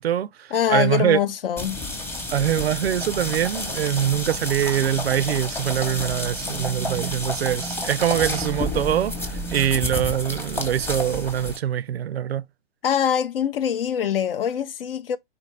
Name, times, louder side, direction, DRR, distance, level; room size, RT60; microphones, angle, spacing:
voice 1, 0.0-1.2 2.3-12.4, right 10 dB, 80° right, 0.5 m, -24 dB
voice 2, 0.5-1.8 12.8-15.2, left 9 dB, 65° left, 0.5 m, -23 dB
sound 1, 1.6-11.6, left 1 dB, 5° left, 0.8 m, -30 dB
4.3 x 3.6 x 3.1 m
hypercardioid pair, 120°, 30 cm